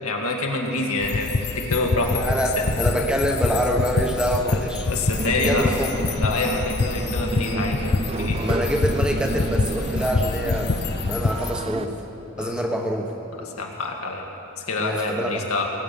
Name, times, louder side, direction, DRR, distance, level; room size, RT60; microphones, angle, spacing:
voice 1, 0.0-2.4 4.5-5.7 6.2-8.4 12.4-12.5 13.4-14.2 14.7-15.6, left 2 dB, 85° left, 0 dB, 2.0 m, -27 dB
sound 1, 1.0-11.5, left 3 dB, 50° left, 0.5 m, -26 dB
sound 2, 1.7-11.3, equal, 65° left, 3.1 m, -36 dB
voice 2, 2.2-4.9 5.4-5.9 8.4-12.0 12.4-13.1 14.8-15.5, equal, 5° right, 1 dB, 1.0 m, -25 dB
sound 3, 5.2-11.9, right 3 dB, 25° right, 0.3 m, -31 dB
20.5 x 9.2 x 6.8 m, 2.9 s
head